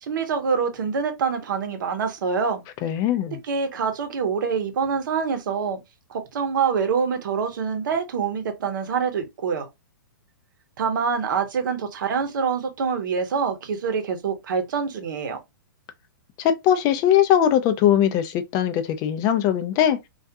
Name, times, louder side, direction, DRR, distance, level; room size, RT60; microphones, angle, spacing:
voice 1, 0.0-2.6 3.5-5.8 6.1-9.7 10.8-15.4, right 6 dB, 65° right, 0.8 m, -25 dB
voice 2, 2.8-3.4 16.4-20.0, left 10 dB, 30° left, 0.4 m, -20 dB
2.3 x 2.1 x 2.7 m
hypercardioid pair, 130°, 11 cm